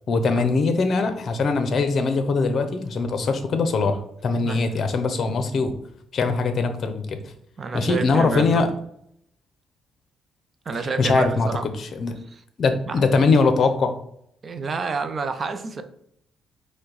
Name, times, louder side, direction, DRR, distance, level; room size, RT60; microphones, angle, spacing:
voice 1, 0.1-5.7 6.1-7.2 7.7-8.7 11.0-11.5 11.8-12.2 12.6-14.0, left 4 dB, 55° left, 8 dB, 0.6 m, -21 dB
voice 2, 7.6-8.6 10.7-11.6 12.3-12.4 12.9-13.0 14.4-15.8, right 4 dB, 40° right, 8 dB, 0.5 m, -29 dB
5.2 x 2.2 x 3.9 m, 0.70 s
cardioid pair, 90°, 0 cm